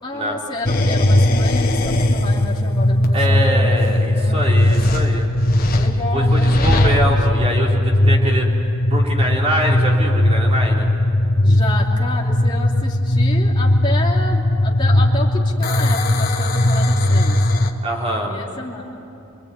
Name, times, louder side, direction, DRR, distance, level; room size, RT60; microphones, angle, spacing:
voice 1, 0.0-5.1 5.7-7.2 11.4-17.4 18.2-18.8, left 2 dB, 20° left, -3 dB, 3.1 m, -30 dB
sound 1, 0.6-17.7, left 1 dB, 40° left, 1.5 m, -17 dB
voice 2, 3.1-5.3 5.9-8.5 8.9-10.9 17.8-18.3, equal, 25° right, -1 dB, 3.5 m, -24 dB
28.0 x 21.5 x 9.3 m, 2.8 s
head